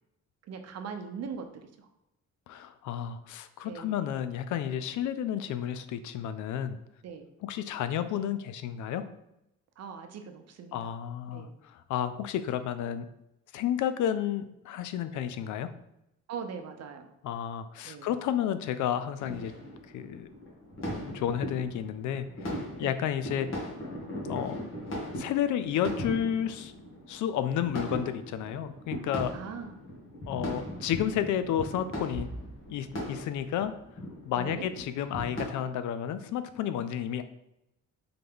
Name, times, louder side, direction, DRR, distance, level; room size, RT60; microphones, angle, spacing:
voice 1, 0.5-1.9 3.6-3.9 7.0-7.3 9.8-10.8 11.3-11.6 15.1-15.2 16.3-17.1 17.8-18.1 22.8-23.0 29.3-29.8 34.3-34.7, right 6 dB, 60° right, 6 dB, 0.7 m, -41 dB
voice 2, 2.5-6.8 7.4-9.1 10.7-13.1 13.5-15.7 17.2-19.5 19.9-20.3 21.1-23.7 24.3-24.6 25.1-26.7 27.1-29.3 30.3-32.3 32.7-33.7 34.2-37.2, left 10 dB, 75° left, 11 dB, 0.5 m, -31 dB
sound 1, 19.2-35.5, equal, 45° left, 1.6 m, -39 dB
3.9 x 3.3 x 3.5 m, 0.85 s
cardioid pair, 90°, 30 cm